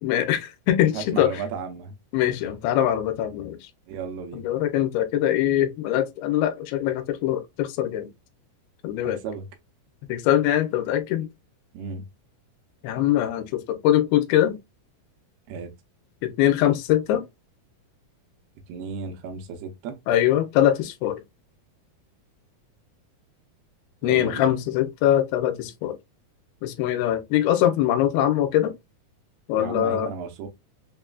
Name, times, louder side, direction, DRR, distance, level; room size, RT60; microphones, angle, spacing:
voice 1, 0.0-1.4 2.1-3.6 4.3-8.1 8.8-9.2 10.1-11.3 12.8-14.6 16.2-17.3 20.1-21.2 24.0-26.0 26.6-28.7 29.5-30.1, left 12 dB, 90° left, 2.5 m, -22 dB
voice 2, 0.9-1.9 3.9-4.4 9.0-9.4 11.7-12.1 15.5-15.7 18.7-20.0 24.0-24.5 29.6-30.5, right 5 dB, 85° right, 2.6 m, -34 dB
6.1 x 2.4 x 2.2 m
omnidirectional pair, 4.3 m